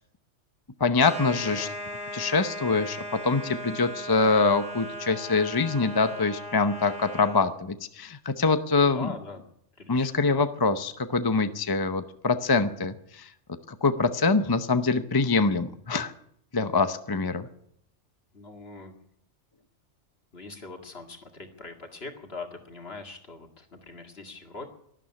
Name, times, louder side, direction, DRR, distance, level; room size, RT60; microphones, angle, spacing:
voice 1, 0.8-1.7 2.1-3.0 3.2-9.1 9.9-13.3 13.8-16.1 16.5-17.5, left 4 dB, 25° left, 9 dB, 0.7 m, -24 dB
sound 1, 1.0-7.5, equal, 5° right, 5.4 m, -37 dB
voice 2, 1.4-1.8 8.9-9.4 9.8-10.2 18.3-18.9 20.3-24.7, left 3 dB, 55° left, 4 dB, 2.3 m, -42 dB
12.5 x 12.0 x 9.9 m, 0.71 s
omnidirectional pair, 1.2 m